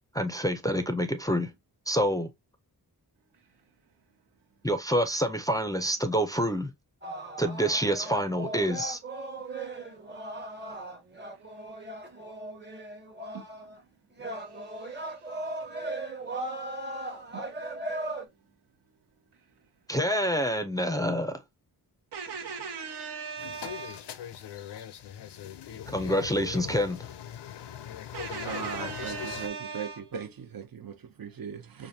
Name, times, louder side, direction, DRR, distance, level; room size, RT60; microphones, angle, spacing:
voice 1, 0.1-1.5 1.9-2.3 4.6-6.7 7.4-9.0 19.9-21.4 25.9-27.0, equal, 10° left, 0.5 m, -27 dB
voice 2, 3.3-3.8 4.3-4.4 9.4-10.3 10.6-10.8 11.3-12.3 13.3-18.5 19.1-19.7 22.1-24.2 28.1-30.0, right 5 dB, 80° right, 1.0 m, -43 dB
sound 1, 7.0-13.8 14.2-18.3, right 2 dB, 25° right, 1.0 m, -38 dB
sound 2, 23.4-29.5, left 10 dB, 90° left, 0.5 m, -40 dB
voice 3, 28.4-31.9, right 7 dB, 60° right, 0.7 m, -39 dB
4.8 x 2.5 x 2.7 m
wide cardioid pair, 80°, 40 cm